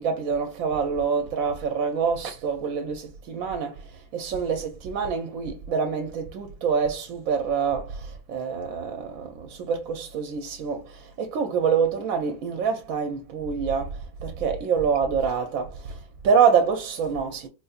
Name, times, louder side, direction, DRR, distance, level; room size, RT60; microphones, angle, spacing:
voice 1, 0.0-17.5, right 6 dB, 85° right, 1.0 m, -26 dB
3.9 x 2.6 x 2.3 m
omnidirectional pair, 1.4 m